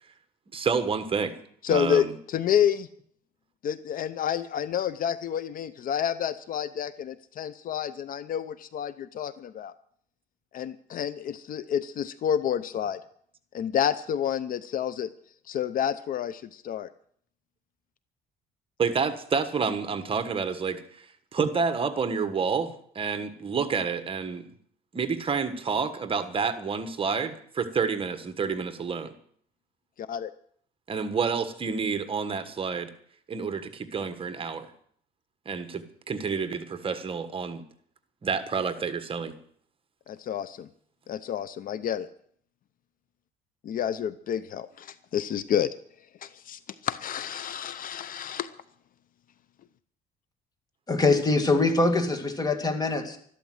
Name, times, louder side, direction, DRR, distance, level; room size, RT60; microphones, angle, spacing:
voice 1, 0.5-1.3 1.7-2.1 18.8-24.4 24.9-29.1 30.9-32.9 33.3-34.7 35.4-37.6 38.2-39.3, right 5 dB, 30° right, 10 dB, 1.5 m, -29 dB
voice 2, 1.6-2.9 3.6-9.7 10.5-13.0 13.5-15.1 15.5-16.9 30.0-30.3 40.1-40.7 41.1-42.1 43.6-45.7 46.2-48.5, left 9 dB, 55° left, 15 dB, 0.7 m, -29 dB
voice 3, 50.9-53.2, left 3 dB, 25° left, 6 dB, 2.4 m, -23 dB
13.0 x 12.0 x 7.9 m, 0.62 s
cardioid pair, 110°, 17 cm